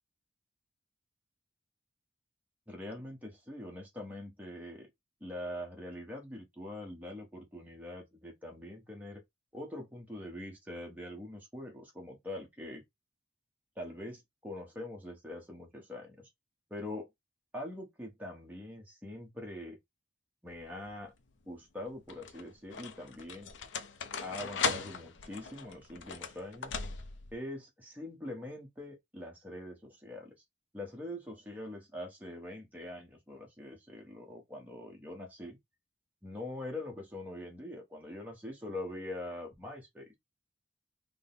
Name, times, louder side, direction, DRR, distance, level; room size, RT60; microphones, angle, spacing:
voice 1, 2.7-4.9 5.2-9.2 9.5-12.8 13.8-16.3 16.7-17.1 17.5-19.8 20.4-21.1 21.5-23.5 24.2-26.8 27.3-30.3 30.7-35.6 36.2-40.2, left 1 dB, 10° right, 1.0 m, -43 dB
sound 1, 20.5-21.0 21.9-27.4, left 5 dB, 70° left, 0.5 m, -38 dB
3.8 x 2.2 x 3.8 m
head